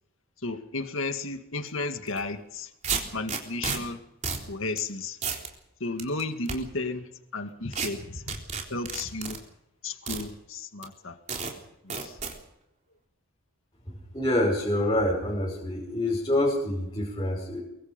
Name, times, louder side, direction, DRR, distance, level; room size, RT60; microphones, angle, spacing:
voice 1, 0.4-2.7 3.1-4.0 4.5-5.2 5.8-8.4 8.7-9.4 9.8-11.1 11.8-12.2, left 3 dB, 65° left, 7 dB, 2.0 m, -33 dB
sound 1, 2.1-2.2 2.8-3.8 4.2-4.5 4.8-4.9 5.2-5.5 6.0-6.6 7.7-7.9 8.3-9.4 10.1-10.2 10.8-10.9 11.3-11.5 11.9-12.3, right 5 dB, 35° right, 3.7 m, -31 dB
voice 2, 14.1-17.6, left 1 dB, 20° left, -4 dB, 5.3 m, -26 dB
24.0 x 23.5 x 5.3 m, 0.84 s
head